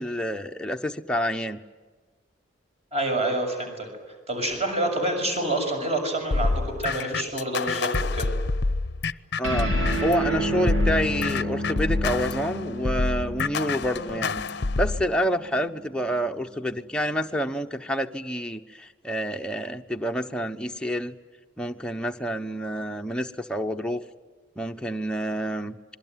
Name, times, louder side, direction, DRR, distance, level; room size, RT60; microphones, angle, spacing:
voice 1, 0.0-1.6 9.4-9.7 10.0-14.4 14.8-21.1 21.6-24.0 24.6-25.8, equal, 5° left, 3 dB, 1.0 m, -28 dB
voice 2, 2.9-3.9 4.3-8.3, right 1 dB, 30° right, 3 dB, 6.9 m, -27 dB
sound 1, 6.3-10.2 10.7-15.0, left 3 dB, 55° left, 0.7 m, -27 dB
sound 2, 9.4-16.2, right 1 dB, 85° right, 7.3 m, -31 dB
26.5 x 22.5 x 9.4 m, 1.5 s
head